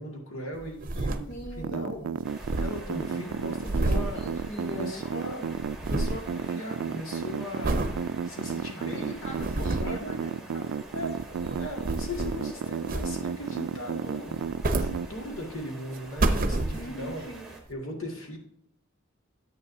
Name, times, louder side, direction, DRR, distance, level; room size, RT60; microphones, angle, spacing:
voice 1, 0.0-2.1 2.6-4.2 4.7-5.5 5.8-10.2 10.9-17.2 17.7-18.4, left 1 dB, 85° left, 0 dB, 2.1 m, -39 dB
sound 1, 0.6-1.7 2.0-2.1 2.2-5.0 5.3-6.3 6.7-7.1 7.6-8.0 8.5-8.6 9.2-10.0 11.0-12.5 12.9-13.4 14.3-15.5 15.9-17.1 17.7-17.8, right 2 dB, 45° right, 0.7 m, -30 dB
voice 2, 1.3-2.1 3.8-5.0 8.8-10.8 16.7-17.5, equal, 65° left, 1 dB, 1.3 m, -42 dB
sound 2, 1.6-15.1, right 7 dB, 75° right, 0.3 m, -32 dB
sound 3, 2.2-17.6, right 2 dB, 5° right, 1.4 m, -46 dB
9.7 x 8.4 x 2.7 m, 0.70 s
head